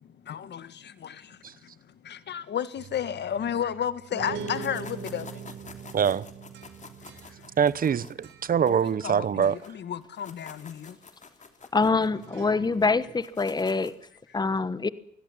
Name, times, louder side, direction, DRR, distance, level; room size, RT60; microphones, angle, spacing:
voice 1, 0.0-1.7 2.0-5.4 8.6-11.0, left 9 dB, 60° left, 1.8 m, -33 dB
sound 1, 2.8-9.1 9.4-9.8 12.2-13.1, right 6 dB, 75° right, 3.9 m, -44 dB
Bass guitar, 4.1-8.2, right 7 dB, 25° right, 5.2 m, -45 dB
sound 2, 4.4-9.7 10.0-14.1, left 5 dB, 35° left, 3.3 m, -49 dB
voice 2, 5.9-6.3 7.6-9.6, right 7 dB, 45° right, 1.0 m, -24 dB
voice 3, 11.7-13.9 14.3-14.9, left 4 dB, 20° left, 1.2 m, -25 dB
24.5 x 16.5 x 7.4 m
cardioid pair, 90°, 20 cm